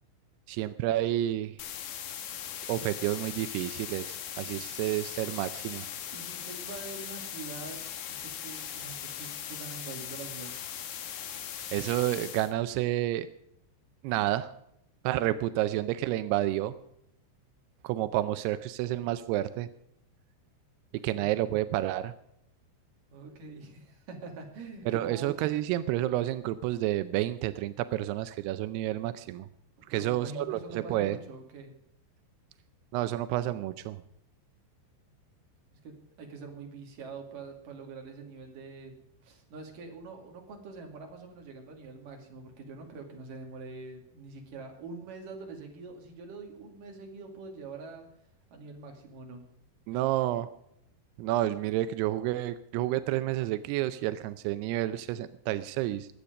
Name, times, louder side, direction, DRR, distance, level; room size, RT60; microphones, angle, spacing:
voice 1, 0.5-1.5 2.7-5.8 11.7-13.3 14.0-14.5 15.0-16.7 17.8-19.7 21.0-22.1 24.9-29.5 29.9-31.2 32.9-34.0 49.9-50.5 51.2-56.1, right 14 dB, 85° right, 13 dB, 2.3 m, -30 dB
sound 1, 1.6-12.5, left 9 dB, 75° left, 1.8 m, -39 dB
voice 2, 6.1-7.8 8.1-10.5 23.1-25.3 29.9-31.7 35.8-39.0 39.2-48.1 48.5-49.4, right 3 dB, 50° right, 2 dB, 3.8 m, -44 dB
22.5 x 8.5 x 5.2 m, 0.75 s
omnidirectional pair, 5.4 m